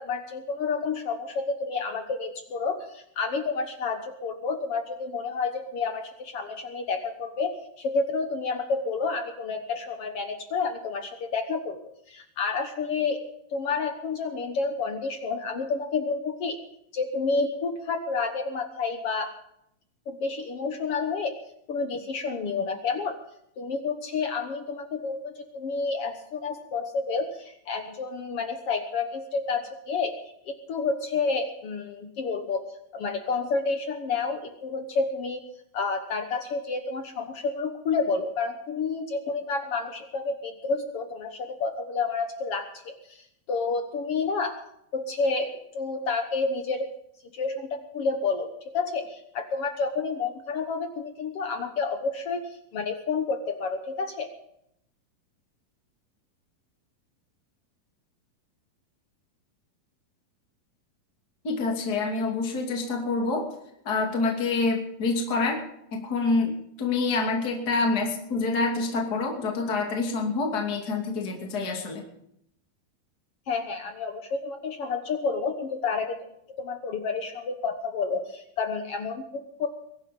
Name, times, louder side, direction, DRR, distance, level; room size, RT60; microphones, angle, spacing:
voice 1, 0.0-11.8 12.1-13.2 13.5-16.6 16.9-19.3 20.1-21.3 21.7-23.2 23.6-30.1 30.5-32.6 32.9-35.4 35.7-44.5 44.9-46.9 47.3-47.7 47.9-52.4 52.7-54.3 73.5-76.3 76.6-79.7, left 4 dB, 65° left, 6 dB, 1.4 m, -30 dB
voice 2, 61.4-63.4 63.8-65.6 65.9-66.5 66.8-72.0, left 3 dB, 30° left, 1 dB, 2.8 m, -27 dB
22.5 x 11.5 x 5.4 m, 0.75 s
omnidirectional pair, 4.3 m